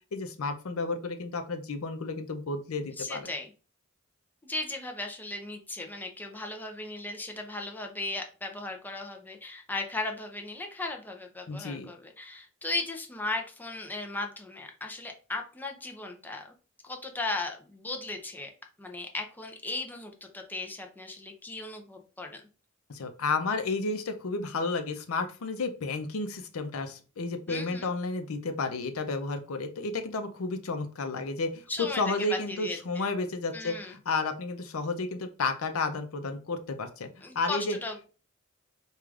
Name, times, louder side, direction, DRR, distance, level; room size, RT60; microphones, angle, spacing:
voice 1, 0.1-3.3 11.5-11.9 22.9-37.8, left 3 dB, 85° left, 7 dB, 0.6 m, -32 dB
voice 2, 3.0-3.5 4.4-16.5 16.8-18.5 18.8-22.4 27.5-27.9 31.7-32.0 32.3-33.1 33.5-33.9 37.2-38.1, left 2 dB, 10° left, 2 dB, 0.5 m, -36 dB
4.7 x 2.4 x 2.4 m, 0.35 s
head